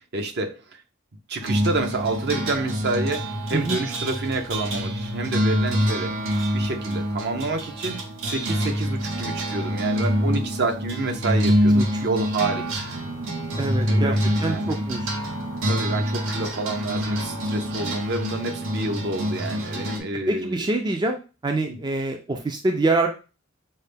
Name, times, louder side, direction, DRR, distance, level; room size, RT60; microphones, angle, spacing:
voice 1, 0.1-0.6 1.3-6.1 6.5-12.9 13.9-14.7 15.7-20.6 21.7-21.8, right 2 dB, 55° right, 5 dB, 0.7 m, -28 dB
sound 1, 1.4-20.0, equal, 85° right, 0.8 m, -26 dB
voice 2, 11.7-12.1 13.6-14.1 14.4-15.1 20.3-21.2 21.4-23.1, right 2 dB, 20° right, 3 dB, 0.4 m, -25 dB
5.5 x 2.1 x 3.3 m, 0.32 s
head